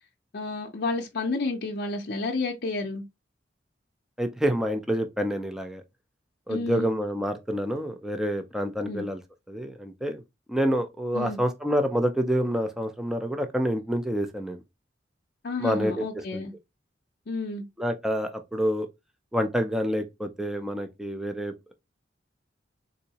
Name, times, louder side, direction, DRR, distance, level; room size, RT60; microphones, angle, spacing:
voice 1, 0.3-3.0 6.5-6.9 8.8-9.1 11.1-11.4 15.4-16.5 17.3-17.6, left 3 dB, 60° left, 0.6 m, -30 dB
voice 2, 4.2-5.8 6.5-9.2 9.5-10.2 10.5-14.6 15.6-16.4 17.8-18.9 19.3-21.7, equal, 5° right, 0.5 m, -28 dB
3.9 x 2.6 x 2.8 m
head